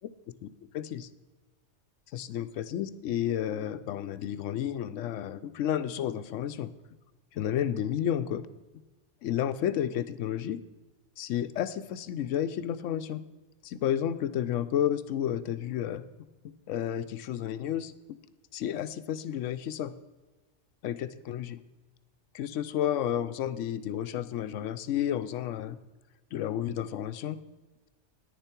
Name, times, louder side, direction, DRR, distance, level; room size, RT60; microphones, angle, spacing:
voice 1, 0.7-1.1 2.1-6.7 7.3-8.4 9.2-10.6 11.2-13.2 13.6-16.0 16.7-17.9 18.5-19.9 20.8-21.6 22.3-25.8 26.3-27.4, left 10 dB, 85° left, 12 dB, 0.9 m, -31 dB
10.0 x 10.0 x 4.4 m, 1.2 s
omnidirectional pair, 1.3 m